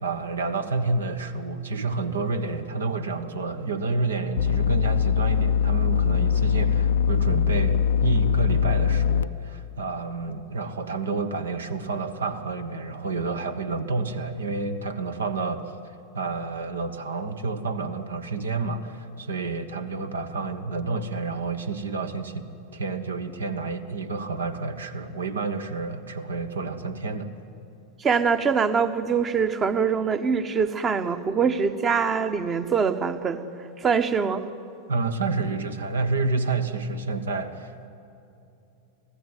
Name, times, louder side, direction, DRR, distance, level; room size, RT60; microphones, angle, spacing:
voice 1, 0.0-15.7 16.1-22.4 22.7-27.3 34.9-37.9, right 3 dB, 70° right, 10 dB, 1.4 m, -29 dB
sound 1, 4.4-9.2, left 8 dB, 65° left, 0.5 m, -22 dB
voice 2, 28.0-33.4 33.8-34.5, right 6 dB, 25° right, 11 dB, 1.2 m, -23 dB
25.0 x 16.0 x 9.5 m, 2.8 s
figure-of-eight pair, 90°, 0 cm